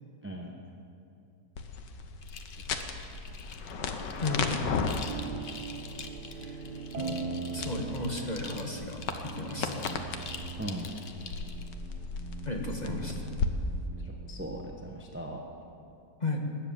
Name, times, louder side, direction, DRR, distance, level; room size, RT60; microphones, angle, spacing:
voice 1, 0.2-0.6 10.6-10.9 12.8-13.0 14.0-15.4, right 1 dB, 10° right, 1 dB, 0.9 m, -39 dB
sound 1, 1.6-13.5, left 5 dB, 85° left, 1.6 m, -36 dB
sound 2, 2.2-11.7, left 5 dB, 45° left, 0.8 m, -46 dB
voice 2, 4.2-4.9 6.3-6.6 7.0-7.2 7.5-10.0 12.4-13.2 16.2-16.4, left 2 dB, 25° left, 1 dB, 1.5 m, -34 dB
sound 3, 5.1-15.0, right 5 dB, 75° right, 1.5 m, -42 dB
20.0 x 7.8 x 9.0 m, 2.7 s
omnidirectional pair, 1.8 m